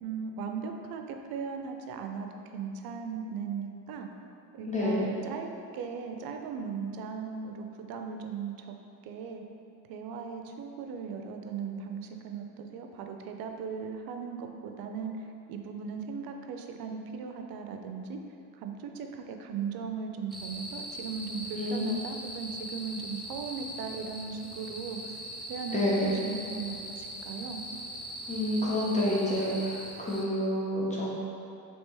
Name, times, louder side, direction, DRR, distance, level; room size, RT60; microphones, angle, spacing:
voice 1, 0.0-4.1 4.5-5.5 5.7-8.7 9.0-9.4 9.9-18.2 18.6-25.1 25.5-27.6, right 6 dB, 55° right, 4 dB, 0.5 m, -38 dB
voice 2, 4.7-5.1 21.6-22.0 25.7-26.1 28.3-31.1, left 1 dB, 15° left, -6 dB, 0.9 m, -28 dB
sound 1, 20.3-30.3, equal, ahead, 0.4 m, -41 dB
3.2 x 3.0 x 3.1 m, 2.7 s
supercardioid pair, 85°, 43 cm